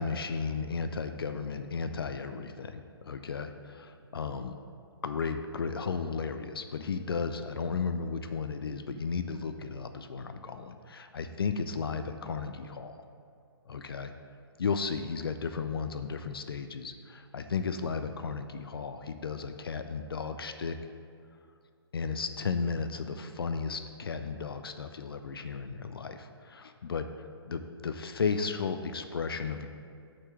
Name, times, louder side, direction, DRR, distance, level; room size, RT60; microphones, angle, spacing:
voice 1, 0.0-4.6 5.0-13.0 13.7-14.1 14.6-20.8 21.9-27.1 27.4-29.7, left 5 dB, 60° left, 8 dB, 0.4 m, -34 dB
6.6 x 3.9 x 5.7 m, 2.3 s
figure-of-eight pair, 125°, 14 cm